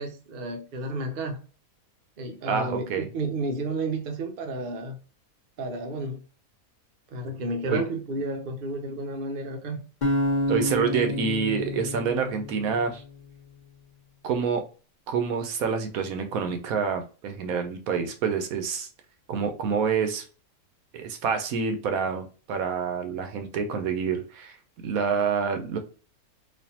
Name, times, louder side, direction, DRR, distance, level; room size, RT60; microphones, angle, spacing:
voice 1, 0.0-1.4 2.2-5.0 5.6-6.2 7.1-10.1, right 2 dB, 50° right, 0.7 m, -32 dB
voice 2, 2.4-3.1 7.7-7.8 10.5-13.0 14.2-14.6 15.1-18.9 19.3-20.2 20.9-24.6 24.8-25.8, right 6 dB, 75° right, 1.1 m, -27 dB
sound 1, 10.0-13.2, left 1 dB, 40° left, 0.8 m, -29 dB
4.1 x 2.7 x 2.8 m
omnidirectional pair, 1.6 m